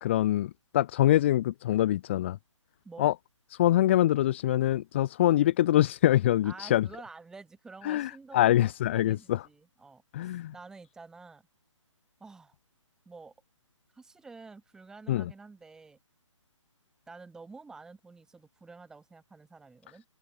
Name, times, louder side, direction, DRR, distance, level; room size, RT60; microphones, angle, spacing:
voice 1, 0.0-2.4 3.0-3.1 3.5-6.9 7.8-9.5 10.1-10.5 15.1-15.3, left 13 dB, 20° left, 0.9 m, -24 dB
voice 2, 6.4-11.4 12.2-12.5 13.0-13.3 13.9-16.0 17.1-20.0, right 4 dB, 5° right, 6.2 m, -49 dB
open air
hypercardioid pair, 165°, 17 cm